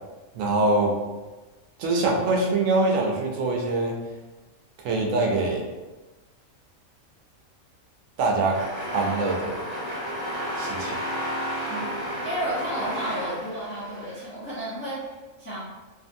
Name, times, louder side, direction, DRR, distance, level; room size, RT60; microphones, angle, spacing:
voice 1, 0.3-0.9 1.8-4.0 4.8-5.6 8.2-8.6 8.9-9.6 10.6-11.0, right 2 dB, 80° right, 0 dB, 1.0 m, -24 dB
sound 1, 8.5-14.2, equal, 25° right, 1.0 m, -32 dB
voice 2, 12.2-15.6, right 1 dB, 15° left, -10 dB, 0.5 m, -32 dB
2.6 x 2.5 x 2.5 m, 1.2 s
omnidirectional pair, 1.3 m